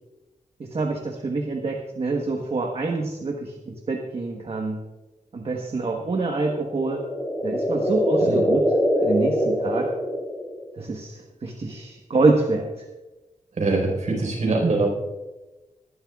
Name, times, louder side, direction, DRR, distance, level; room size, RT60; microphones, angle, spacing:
voice 1, 0.6-4.8 5.3-7.0 7.4-8.6 9.0-9.9 10.7-12.8, right 3 dB, 50° right, 1 dB, 1.3 m, -26 dB
sound 1, 6.6-10.8, equal, 15° left, 3.1 m, -23 dB
voice 2, 13.6-14.9, right 3 dB, 65° right, 0 dB, 4.5 m, -23 dB
21.0 x 12.0 x 2.4 m, 1.1 s
wide cardioid pair, 140°, 13 cm